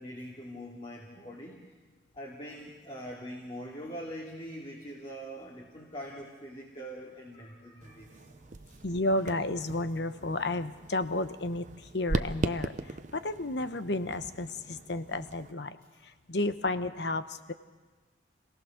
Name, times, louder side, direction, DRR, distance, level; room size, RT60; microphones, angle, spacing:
voice 1, 0.0-1.6 2.1-8.1 8.6-8.8, equal, 30° left, -3 dB, 2.6 m, -43 dB
sound 1, 7.8-15.5, right 2 dB, 45° right, 0.8 m, -39 dB
voice 2, 8.8-11.6 11.9-12.7 13.1-15.8 16.3-17.2, left 2 dB, 70° left, 11 dB, 1.0 m, -31 dB
26.5 x 17.5 x 6.6 m, 1.3 s
head